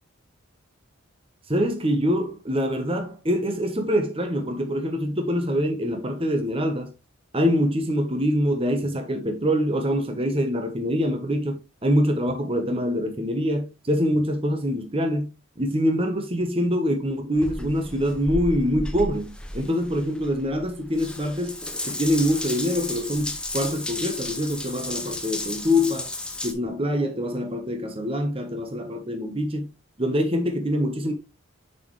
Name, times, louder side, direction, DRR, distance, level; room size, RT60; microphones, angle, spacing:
voice 1, 1.5-6.9 7.3-15.3 15.6-21.6 21.8-26.1 26.4-29.7 30.0-31.1, equal, 25° right, 1.1 m, -25 dB
Water tap faucet / Bathtub (filling or washing) / Drip, 17.4-26.5, left 1 dB, 5° left, 0.7 m, -33 dB
7.2 x 4.8 x 3.2 m
head